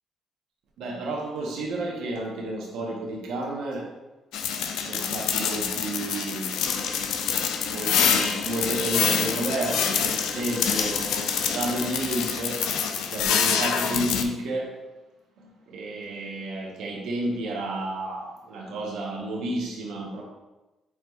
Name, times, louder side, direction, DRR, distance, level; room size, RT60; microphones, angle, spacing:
voice 1, 0.8-3.9 4.7-6.5 7.7-12.6 13.1-14.7 15.4-20.2, right 1 dB, 85° right, -2 dB, 0.9 m, -31 dB
sound 1, 4.3-14.2, left 7 dB, 90° left, 0.4 m, -26 dB
sound 2, 6.6-14.4, left 2 dB, 20° left, 0.5 m, -41 dB
4.6 x 4.1 x 2.3 m, 1.1 s
cardioid pair, 90°, 0 cm